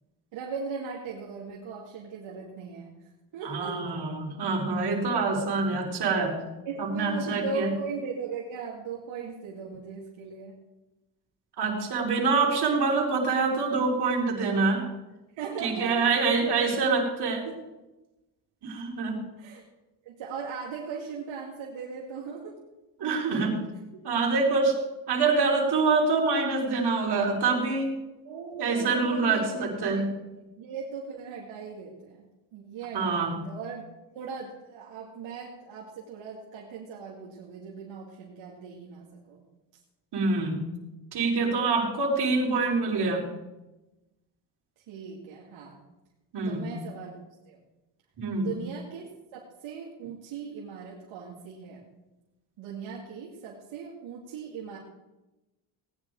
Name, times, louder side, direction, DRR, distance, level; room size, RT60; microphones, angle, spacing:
voice 1, 0.3-3.8 6.6-10.6 15.4-16.8 17.2-17.6 19.4-19.6 20.0-22.6 23.3-23.4 23.9-24.1 28.2-29.6 29.9-32.2 32.5-33.8 34.1-39.4 44.9-45.8 46.4-47.2 47.4-47.6 48.3-51.9 52.6-54.8, right 5 dB, 70° right, -4 dB, 2.8 m, -39 dB
voice 2, 3.4-6.4 6.8-7.7 11.6-14.9 15.6-17.5 18.6-19.2 23.0-23.6 24.0-24.8 25.1-27.9 28.6-30.1 32.9-33.4 40.1-40.7 41.1-43.2 46.3-46.7 48.2-48.5, right 4 dB, 55° right, -1 dB, 4.4 m, -25 dB
18.5 x 9.9 x 4.8 m, 1.0 s
cardioid pair, 95°, 47 cm